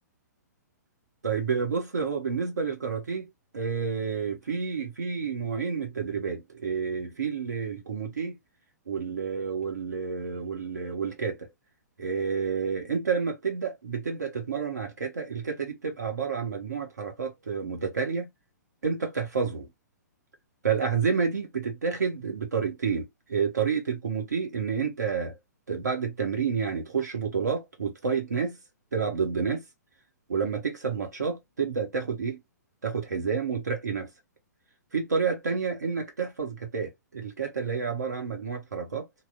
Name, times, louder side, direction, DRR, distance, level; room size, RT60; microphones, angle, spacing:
voice 1, 1.2-8.4 8.9-11.5 12.0-18.3 18.8-19.7 20.6-25.4 25.7-28.6 28.9-29.7 30.3-32.4 32.8-34.1 34.9-39.1, right 6 dB, 65° right, 1.1 m, -29 dB
2.9 x 2.0 x 2.5 m
figure-of-eight pair, 115°, 10 cm